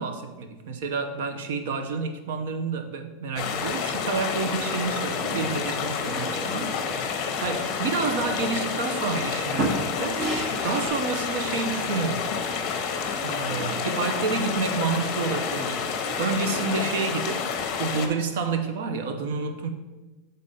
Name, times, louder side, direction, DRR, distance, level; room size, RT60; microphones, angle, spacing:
voice 1, 0.0-6.8 7.0-10.2 10.6-12.3 13.2-19.7, right 4 dB, 70° right, 0.8 m, -29 dB
sound 1, 3.4-18.1, left 6 dB, 35° left, 0.8 m, -29 dB
sound 2, 8.3-8.4 8.8-9.3 9.5-10.9, right 2 dB, 35° right, 0.9 m, -29 dB
6.7 x 4.0 x 5.5 m
supercardioid pair, 165°, 0 cm